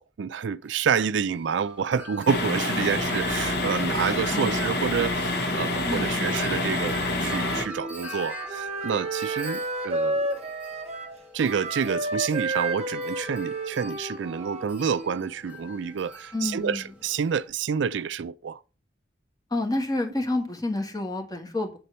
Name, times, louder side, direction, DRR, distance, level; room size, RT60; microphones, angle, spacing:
voice 1, 0.0-10.3 11.3-18.6, right 6 dB, 70° right, 0.4 m, -28 dB
Wind chime, 0.6-17.5, equal, 5° right, 2.5 m, -44 dB
sound 1, 2.3-7.7, left 2 dB, 60° left, 1.5 m, -27 dB
voice 2, 4.3-5.1 5.8-6.4 16.3-16.8 19.5-21.8, left 2 dB, 20° left, 1.9 m, -29 dB
Wind instrument woodwind instrument, 7.5-15.3, right 2 dB, 35° right, 1.1 m, -31 dB
8.3 x 4.3 x 6.8 m
head